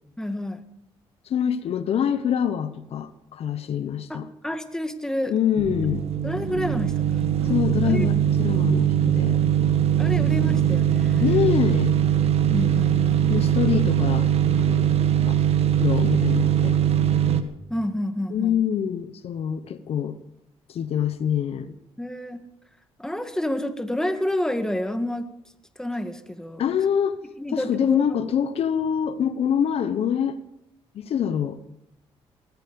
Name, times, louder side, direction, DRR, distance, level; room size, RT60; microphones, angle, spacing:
voice 1, 0.2-0.6 4.1-5.3 6.2-8.1 10.0-11.4 12.5-13.6 17.7-18.6 22.0-22.4 23.0-25.3 25.8-26.6 27.4-28.1, left 1 dB, 5° left, 9 dB, 1.8 m, -29 dB
voice 2, 1.3-4.3 5.3-6.1 7.5-9.4 11.2-12.0 13.3-14.3 14.6-15.4 15.8-16.8 18.3-20.2 20.7-21.8 26.6-27.2 27.5-30.4 30.9-31.6, left 8 dB, 65° left, 13 dB, 1.0 m, -25 dB
sound 1, 5.6-17.4, right 10 dB, 65° right, 1.5 m, -21 dB
19.0 x 14.5 x 5.3 m, 0.81 s
cardioid pair, 75°, 11 cm